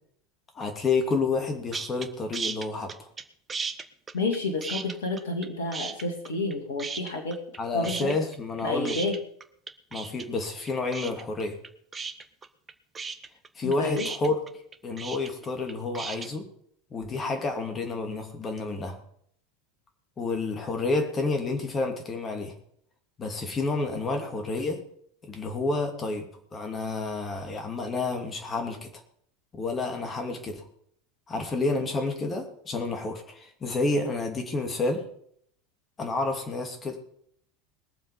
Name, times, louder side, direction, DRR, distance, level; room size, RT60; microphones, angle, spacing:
voice 1, 0.5-3.1 7.6-9.0 9.9-11.6 13.6-16.5 16.9-19.0 20.2-22.5 23.2-24.8 25.3-28.9 29.5-30.7 31.3-35.1 36.0-37.0, left 3 dB, 30° left, 4 dB, 2.8 m, -30 dB
sound 1, 1.7-2.1 2.3-3.2 3.5-5.5 5.7-6.5 6.8-7.6 7.8-16.3, right 5 dB, 25° right, 1.2 m, -35 dB
voice 2, 4.1-7.4 7.7-8.1 8.6-9.2 13.6-14.1, left 2 dB, 70° left, 4 dB, 2.3 m, -30 dB
21.0 x 7.3 x 5.3 m, 0.66 s
figure-of-eight pair, 80°, 0 cm